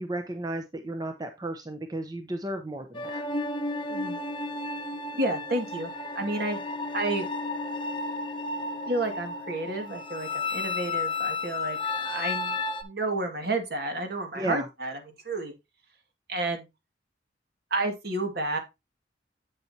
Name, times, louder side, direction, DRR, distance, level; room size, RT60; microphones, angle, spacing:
voice 1, 0.0-3.2 14.3-14.7, right 1 dB, 20° right, 6 dB, 0.8 m, -34 dB
sound 1, 2.9-12.8, left 3 dB, 25° left, 0.9 m, -33 dB
voice 2, 5.1-6.6 6.9-7.3 8.9-12.6 12.8-15.5 16.3-16.7 17.7-18.6, right 2 dB, 60° right, 5 dB, 2.1 m, -31 dB
8.3 x 7.5 x 2.8 m, 0.23 s
head